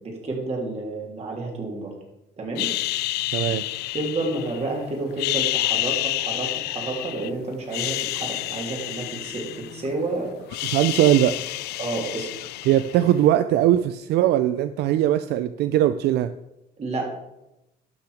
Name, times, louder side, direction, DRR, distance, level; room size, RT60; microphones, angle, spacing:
voice 1, 0.0-1.9 2.4-2.7 3.9-10.3 11.8-12.3 16.8-17.1, right 2 dB, 40° right, -1 dB, 3.2 m, -30 dB
sound 1, 2.6-4.7 5.1-7.3 7.6-10.0 10.3-13.2, left 17 dB, 75° left, 0.4 m, -29 dB
voice 2, 3.3-3.6 10.6-11.4 12.7-16.3, right 12 dB, 75° right, 11 dB, 0.4 m, -20 dB
12.0 x 5.9 x 5.0 m, 0.91 s
cardioid pair, 110°, 17 cm